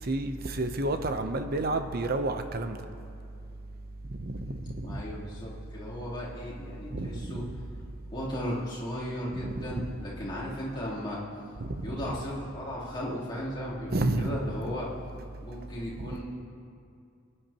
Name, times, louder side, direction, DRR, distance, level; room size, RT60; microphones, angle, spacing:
voice 1, 0.0-2.8 4.1-5.0 6.9-7.6 9.3-9.9 11.6-12.0 13.9-14.4 16.0-16.1, right 2 dB, 50° right, 7 dB, 0.8 m, -31 dB
voice 2, 4.8-7.4 8.1-11.2 11.8-14.9 15.4-16.2, equal, 25° left, -10 dB, 3.4 m, -36 dB
25.5 x 9.9 x 3.0 m, 2.5 s
head